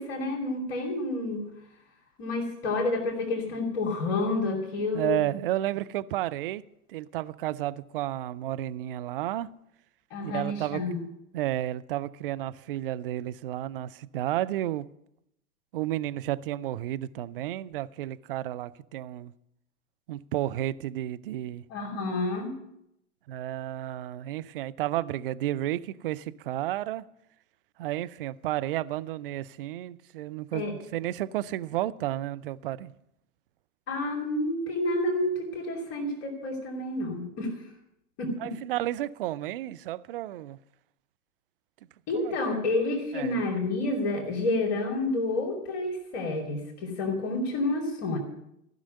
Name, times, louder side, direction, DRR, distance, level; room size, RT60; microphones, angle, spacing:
voice 1, 0.0-1.5 2.2-5.2 10.1-11.0 21.7-22.5 30.5-30.7 33.9-37.5 38.2-38.5 42.1-48.2, left 2 dB, 45° left, 2.8 m, -29 dB
voice 2, 4.9-6.6 6.9-9.5 10.2-10.8 11.3-14.9 15.7-19.3 20.1-21.6 23.3-27.1 27.8-32.9 38.4-40.6 42.2-42.3 43.1-43.4, right 14 dB, 40° right, 0.5 m, -32 dB
14.5 x 6.2 x 9.3 m
figure-of-eight pair, 115°, 44 cm